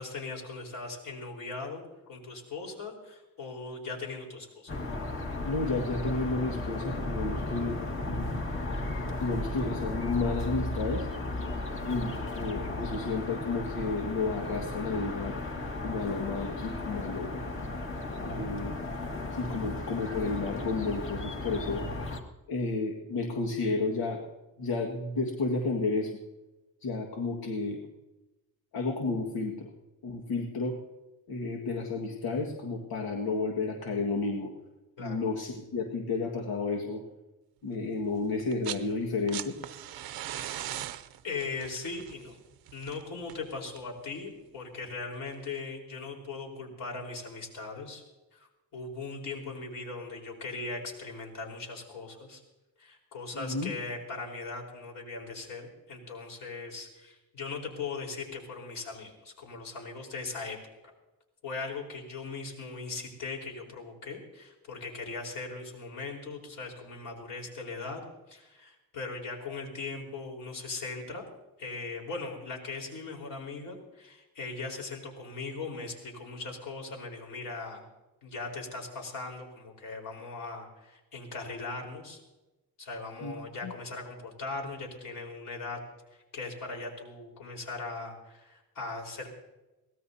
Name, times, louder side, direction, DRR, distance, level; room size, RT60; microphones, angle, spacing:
voice 1, 0.0-4.8 35.0-35.3 41.2-42.4 42.7-48.0 48.3-52.4 52.8-60.6 61.4-68.0 68.3-71.2 71.6-77.8 78.2-82.2 82.8-85.8 86.1-89.3, left 3 dB, 60° left, 1 dB, 4.4 m, -39 dB
sound 1, 4.7-22.2, left 2 dB, 35° left, 1.8 m, -35 dB
voice 2, 5.4-7.8 8.1-8.5 9.2-11.1 11.8-15.4 15.8-17.3 18.2-18.8 19.3-21.8 22.5-24.2 24.6-26.1 26.8-27.8 28.7-29.7 30.0-30.8 31.3-34.5 35.0-37.0 37.6-39.6 53.3-53.7 83.2-83.3 83.6-83.7, left 3 dB, 85° left, 0 dB, 1.9 m, -32 dB
sound 2, 38.4-38.9 39.1-44.0 45.3-45.4, right 12 dB, 75° right, 0.7 m, -40 dB
23.5 x 18.0 x 2.8 m, 1.0 s
cardioid pair, 160°, 36 cm